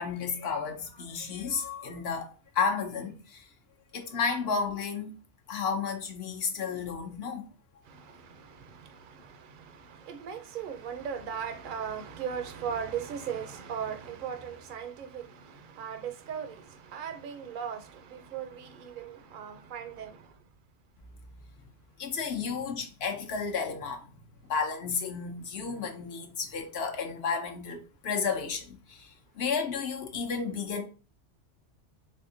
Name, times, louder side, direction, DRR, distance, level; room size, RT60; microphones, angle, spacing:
voice 1, 0.0-2.3 2.5-3.5 3.9-5.1 5.5-7.5 7.7-7.8 22.0-24.1 24.5-30.8, left 5 dB, 60° left, 0.9 m, -32 dB
voice 2, 7.9-20.3, right 7 dB, 55° right, 0.7 m, -38 dB
3.5 x 3.3 x 2.7 m
omnidirectional pair, 1.2 m